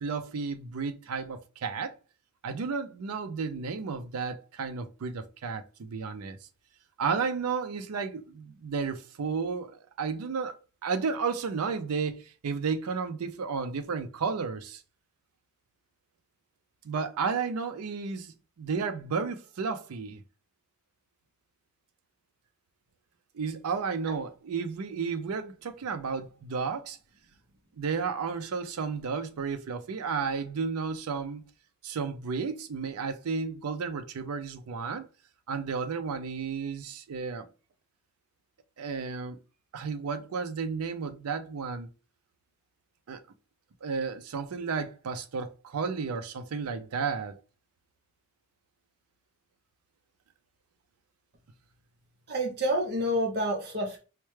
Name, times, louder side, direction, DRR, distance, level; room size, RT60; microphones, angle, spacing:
voice 1, 0.0-1.9 2.4-6.4 7.0-10.6 10.8-14.8 16.8-20.2 23.3-27.0 27.8-31.4 31.8-35.1 35.5-37.5 38.8-39.4 39.7-41.9 43.1-43.2 43.8-47.4, right 5 dB, 80° right, 0.5 m, -32 dB
voice 2, 52.3-54.0, equal, 50° right, 0.7 m, -28 dB
4.4 x 2.1 x 3.1 m
head